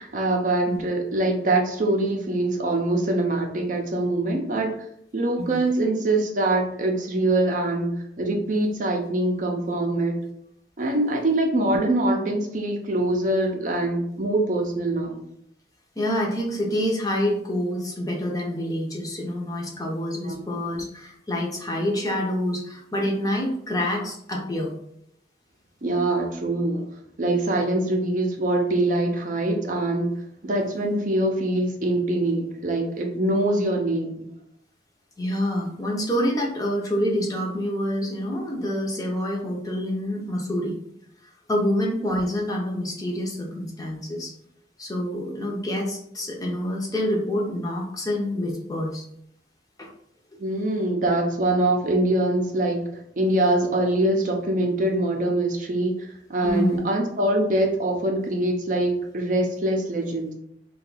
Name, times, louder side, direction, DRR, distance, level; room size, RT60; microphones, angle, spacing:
voice 1, 0.0-4.9 5.1-10.1 10.8-15.2 20.2-20.4 25.8-26.8 27.2-30.1 30.4-34.2 50.4-52.8 53.2-60.3, right 1 dB, 45° right, 2 dB, 0.5 m, -24 dB
voice 2, 16.0-24.7 35.2-40.8 41.5-44.3 44.8-49.0 49.8-49.9 50.3-50.4 56.4-56.8, equal, 20° left, -1 dB, 0.6 m, -27 dB
2.7 x 2.3 x 3.9 m, 0.73 s
head